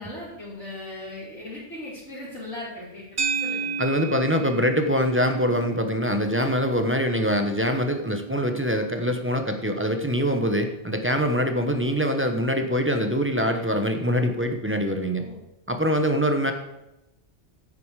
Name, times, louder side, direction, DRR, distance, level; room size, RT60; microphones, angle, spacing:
voice 1, 0.0-3.7 15.2-15.4, left 1 dB, 85° left, -11 dB, 4.3 m, -38 dB
sound 1, 3.2-11.6, right 4 dB, 40° right, 0.9 m, -34 dB
voice 2, 3.8-15.2 15.7-16.5, equal, 10° right, 6 dB, 1.0 m, -24 dB
10.5 x 9.0 x 4.9 m, 0.94 s
omnidirectional pair, 1.2 m